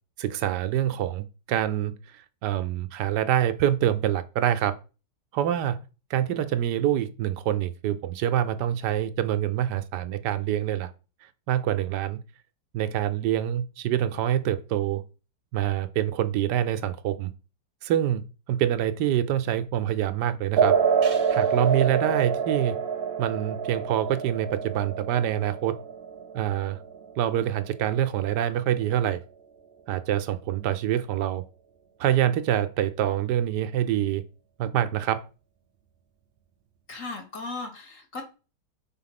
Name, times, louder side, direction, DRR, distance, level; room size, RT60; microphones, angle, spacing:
voice 1, 0.2-4.7 5.3-5.8 6.1-10.9 11.5-12.2 12.7-15.0 15.5-17.3 17.8-18.2 18.5-20.8 21.3-22.8 23.2-25.8 26.3-26.8 27.2-29.2 29.9-31.4 32.0-34.2 34.6-35.3, right 11 dB, 75° right, 1.1 m, -26 dB
sound 1, 20.6-27.6, right 6 dB, 55° right, 0.6 m, -26 dB
voice 2, 36.9-38.2, left 3 dB, 50° left, 1.5 m, -36 dB
4.3 x 4.2 x 5.7 m
omnidirectional pair, 1.9 m